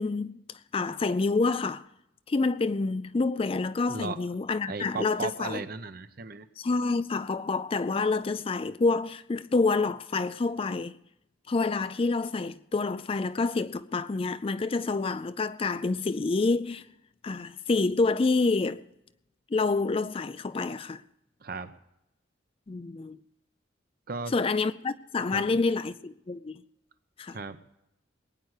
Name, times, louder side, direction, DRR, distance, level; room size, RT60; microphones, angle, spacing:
voice 1, 0.0-1.9 2.3-5.6 6.6-10.9 11.5-16.9 17.2-18.8 19.5-21.0 22.7-23.2 24.3-26.6 27.2-27.4, left 3 dB, 30° left, 0.4 m, -28 dB
voice 2, 4.7-6.5 21.4-21.7 24.1-24.3 25.3-25.4 27.3-27.6, right 4 dB, 50° right, 0.8 m, -36 dB
20.5 x 9.5 x 4.8 m
head